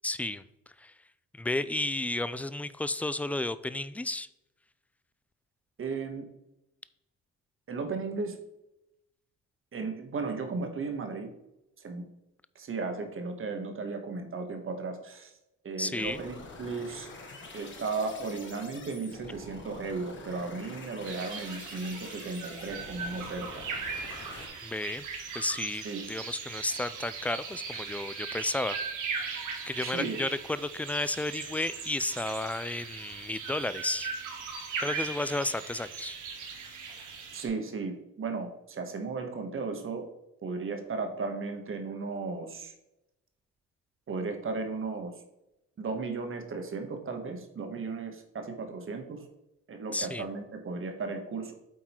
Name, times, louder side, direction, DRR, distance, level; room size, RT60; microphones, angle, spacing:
voice 1, 0.0-0.4 0.8-0.9 1.4-4.3 15.8-16.2 24.6-25.1 25.3-28.8 29.1-34.1 34.7-36.4 49.9-50.2, left 2 dB, 5° left, 14 dB, 0.3 m, -33 dB
voice 2, 5.8-6.3 7.7-8.4 9.7-11.3 11.8-12.0 12.5-15.3 15.6-17.1 17.5-23.6 25.8-26.1 29.8-30.2 37.3-40.1 40.4-42.7 44.1-45.2 45.8-49.3 49.7-51.5, right 4 dB, 45° right, 6 dB, 1.4 m, -35 dB
sound 1, 16.0-24.5, left 3 dB, 40° left, 1.8 m, -47 dB
sound 2, 21.0-37.5, right 5 dB, 90° right, 1.7 m, -39 dB
8.5 x 3.9 x 4.4 m, 0.88 s
cardioid pair, 90°, 30 cm